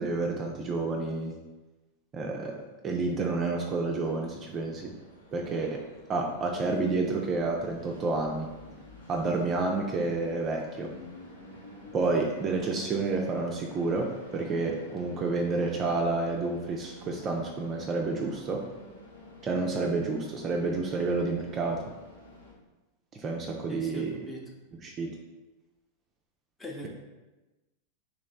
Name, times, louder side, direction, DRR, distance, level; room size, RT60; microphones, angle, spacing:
voice 1, 0.0-1.3 2.1-2.5 2.8-4.9 5.3-5.8 6.1-8.5 9.1-10.9 11.9-18.6 19.4-21.8 23.1-24.1 24.8-25.1, right 3 dB, 25° right, 1 dB, 0.4 m, -29 dB
Train, 4.0-22.5, left 1 dB, 75° left, 1.0 m, -49 dB
voice 2, 23.7-24.4 26.6-26.9, left 1 dB, 10° left, 0 dB, 0.7 m, -39 dB
3.1 x 3.0 x 3.9 m, 1.1 s
figure-of-eight pair, 90°, 0 cm